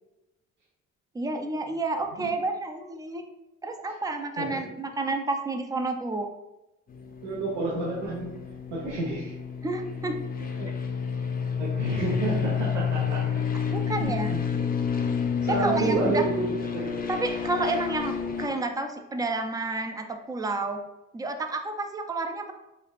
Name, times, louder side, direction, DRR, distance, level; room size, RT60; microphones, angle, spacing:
voice 1, 1.1-3.3 3.6-6.3 9.6-10.2 13.7-14.4 15.5-16.2 17.1-20.8 21.1-22.5, right 2 dB, 10° right, 6 dB, 0.4 m, -30 dB
sound 1, 6.9-18.5, left 7 dB, 30° left, 0.6 m, -30 dB
voice 2, 7.2-8.3 8.7-9.3 10.6-10.7 11.6-13.4 13.9-14.6 15.0-15.1 15.4-16.9, right 3 dB, 80° right, -7 dB, 1.1 m, -30 dB
5.0 x 2.4 x 2.4 m, 0.94 s
cardioid pair, 90°, 30 cm